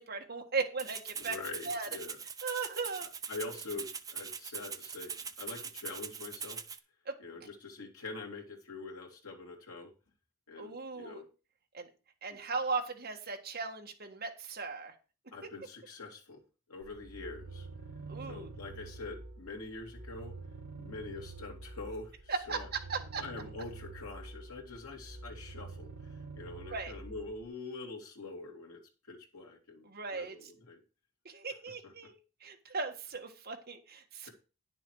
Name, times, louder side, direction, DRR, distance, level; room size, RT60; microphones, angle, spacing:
voice 1, 0.0-1.4 1.6-1.9 2.4-3.1 7.0-7.2 10.6-11.2 11.7-11.9 12.2-14.9 18.1-18.5 22.3-22.6 22.9-23.2 26.7-26.9 29.9-30.3 31.2-34.3, right 4 dB, 45° right, 3 dB, 1.5 m, -37 dB
Rattle (instrument), 0.8-6.8, right 6 dB, 15° right, 0.5 m, -42 dB
voice 2, 1.2-2.2 3.0-6.6 7.2-9.9 10.5-11.3 15.3-16.4 16.7-17.7 18.3-20.3 20.8-22.7 23.2-30.8 31.8-31.9 34.2-34.3, left 3 dB, 75° left, 1 dB, 2.7 m, -45 dB
sound 1, 16.8-27.5, right 3 dB, 65° right, 2.0 m, -47 dB
10.5 x 7.0 x 4.7 m, 0.33 s
head